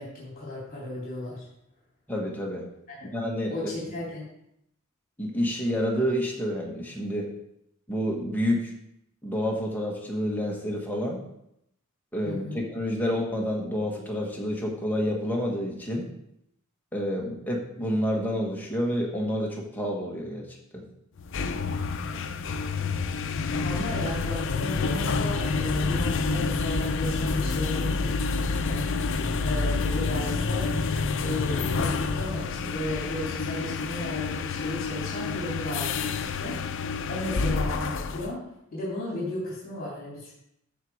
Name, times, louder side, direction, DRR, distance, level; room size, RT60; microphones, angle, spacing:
voice 1, 0.0-1.4 2.9-3.1 3.5-4.3 12.2-12.6 23.6-30.7 31.2-36.6 37.1-38.4 38.7-40.3, left 1 dB, 45° left, -6 dB, 3.3 m, -35 dB
voice 2, 2.1-2.7 3.1-3.9 5.2-7.3 7.9-8.7 9.2-11.2 12.1-16.1 16.9-20.5 20.7-20.8, equal, 10° left, -1 dB, 1.5 m, -29 dB
sound 1, 21.2-38.3, left 4 dB, 60° left, 0.6 m, -28 dB
13.5 x 4.6 x 4.8 m, 0.78 s
head